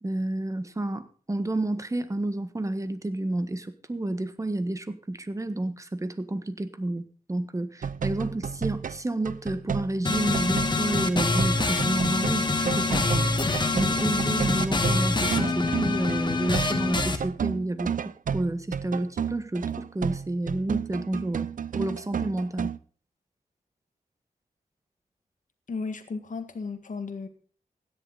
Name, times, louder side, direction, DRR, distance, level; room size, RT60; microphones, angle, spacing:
voice 1, 0.0-7.0 7.3-13.3 13.7-17.9 18.3-21.5 21.7-22.7, right 1 dB, 20° right, 11 dB, 1.4 m, -30 dB
sound 1, 7.8-16.2 16.5-22.8, right 7 dB, 65° right, 0.6 m, -32 dB
sound 2, 10.0-17.2, left 3 dB, 30° left, 1.6 m, -25 dB
voice 2, 25.7-27.3, left 4 dB, 60° left, 6 dB, 1.9 m, -34 dB
16.0 x 10.5 x 4.0 m, 0.43 s
wide cardioid pair, 95°, 15 cm